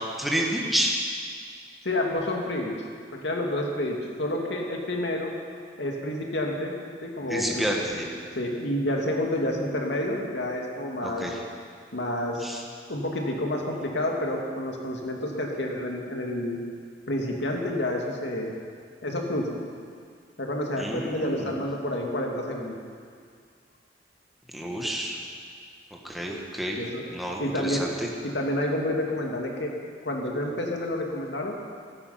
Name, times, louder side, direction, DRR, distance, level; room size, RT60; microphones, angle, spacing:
voice 1, 0.2-1.0 7.3-8.1 11.0-11.4 12.4-12.6 20.8-21.5 24.5-25.2 26.0-26.8 27.1-28.1, right 1 dB, ahead, -1 dB, 1.6 m, -29 dB
voice 2, 1.8-2.7 3.1-5.3 5.8-6.7 7.0-7.7 8.4-11.3 11.9-12.5 12.9-16.6 17.1-18.5 19.0-19.5 20.4-22.8 26.8-27.0 27.4-27.9 28.2-29.7 30.0-31.5, left 1 dB, 80° left, 0 dB, 2.4 m, -29 dB
15.5 x 13.5 x 5.8 m, 2.1 s
head